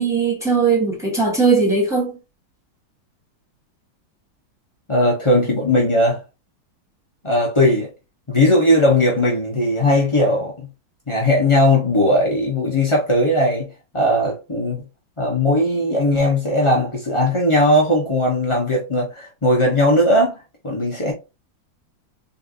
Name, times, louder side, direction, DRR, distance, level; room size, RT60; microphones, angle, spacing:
voice 1, 0.0-2.2, right 4 dB, ahead, 1.9 m, -19 dB
voice 2, 4.9-6.2 7.2-7.9 8.3-10.7 11.1-13.7 13.9-14.8 15.2-21.1, left 1 dB, 35° left, 0.4 m, -18 dB
4.1 x 3.8 x 2.6 m
omnidirectional pair, 2.3 m